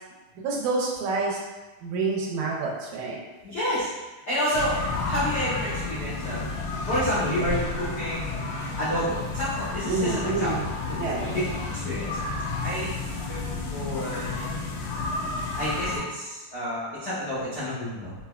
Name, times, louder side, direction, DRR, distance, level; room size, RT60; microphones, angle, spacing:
voice 1, 0.4-1.4 1.8-3.2 9.8-10.6 11.0-11.4, right 3 dB, 80° right, -2 dB, 2.0 m, -28 dB
voice 2, 3.4-3.9 4.3-6.4 6.8-8.3 8.8-10.5 10.8-11.4 11.8-12.2 12.6-13.0 13.3-13.4 13.7-15.1 15.5-18.1, equal, 70° left, -12 dB, 1.0 m, -30 dB
sound 1, 4.5-16.0, left 3 dB, 90° left, 2.1 m, -31 dB
5.6 x 2.2 x 2.3 m, 1.2 s
omnidirectional pair, 3.4 m